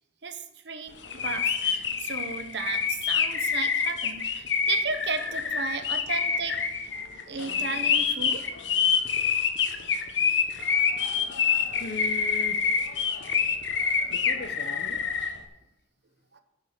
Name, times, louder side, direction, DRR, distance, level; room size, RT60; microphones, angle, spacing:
voice 1, 0.2-6.6 7.3-8.5 16.3-16.4, right 5 dB, 65° right, 9 dB, 1.0 m, -35 dB
sound 1, 1.0-15.3, left 6 dB, 75° left, 1.2 m, -26 dB
voice 2, 11.8-12.7 14.1-15.0, left 4 dB, 60° left, 9 dB, 1.0 m, -38 dB
14.0 x 5.5 x 6.6 m, 0.92 s
head